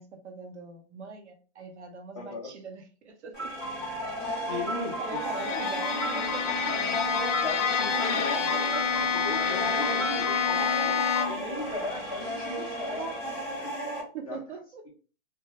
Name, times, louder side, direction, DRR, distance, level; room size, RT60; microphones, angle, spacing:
voice 1, 0.0-3.5 5.0-7.2 8.6-8.8 12.8-13.2 14.1-14.8, right 4 dB, 70° right, 4 dB, 0.8 m, -42 dB
voice 2, 2.1-2.5 4.5-5.2 5.5-5.6 7.4-13.0 13.6-13.7 14.3-14.4, left 3 dB, 30° left, -3 dB, 0.4 m, -38 dB
sound 1, 3.3-14.0, equal, ahead, 0.8 m, -33 dB
Bowed string instrument, 5.1-11.5, left 7 dB, 85° left, 0.7 m, -28 dB
2.1 x 2.1 x 2.8 m, 0.36 s
hypercardioid pair, 180°, 36 cm